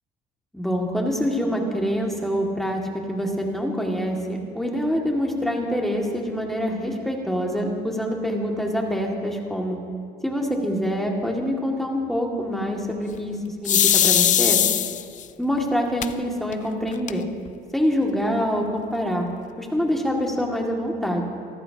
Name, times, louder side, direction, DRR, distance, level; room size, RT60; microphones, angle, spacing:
voice 1, 0.5-2.8 3.1-9.8 10.2-14.6 15.4-17.3 17.7-19.3 19.6-21.2, equal, ahead, -1 dB, 2.3 m, -25 dB
sound 1, 13.6-15.2 16.0-16.1 16.5-16.6 16.9-17.5, left 10 dB, 50° left, 0.5 m, -19 dB
26.5 x 14.0 x 3.0 m, 2.2 s
cardioid pair, 110°, 17 cm